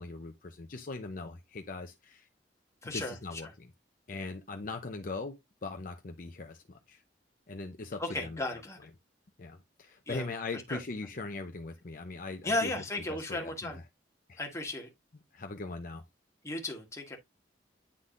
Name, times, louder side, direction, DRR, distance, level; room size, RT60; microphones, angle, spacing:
voice 1, 0.0-2.3 2.9-3.7 4.1-7.0 7.5-8.6 9.4-12.7 13.1-13.8 14.3-14.4 15.3-16.0, left 3 dB, 50° left, 0.7 m, -40 dB
voice 2, 2.8-3.5 8.0-8.8 10.1-10.3 10.7-10.8 12.4-13.8 14.4-14.9 16.4-17.2, left 2 dB, 15° left, 1.5 m, -35 dB
9.8 x 3.8 x 2.5 m
head